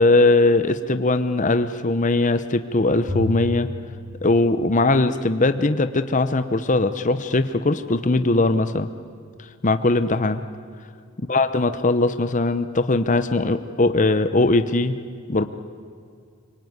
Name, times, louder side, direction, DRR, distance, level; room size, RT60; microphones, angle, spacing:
voice 1, 0.0-3.7 4.2-8.9 9.6-10.4 11.2-14.9 15.3-15.4, left 2 dB, 35° left, 10 dB, 0.9 m, -20 dB
Bowed string instrument, 3.1-5.5, left 2 dB, 10° right, 2.1 m, -33 dB
25.0 x 24.5 x 9.6 m, 2.2 s
head